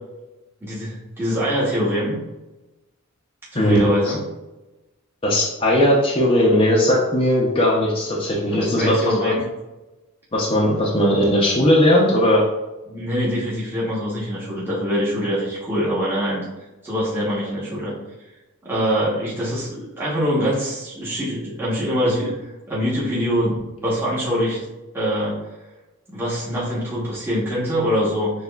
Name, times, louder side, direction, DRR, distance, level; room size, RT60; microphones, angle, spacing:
voice 1, 0.6-2.2 3.5-4.2 8.5-9.4 12.9-16.4 16.8-17.9 18.6-22.4 22.7-23.6 23.8-24.6 24.9-25.4 26.1-28.3, equal, 10° right, -8 dB, 0.9 m, -24 dB
voice 2, 3.5-4.1 5.2-9.3 10.3-12.4, equal, 25° left, -4 dB, 0.6 m, -18 dB
6.5 x 2.3 x 2.3 m, 1.0 s
head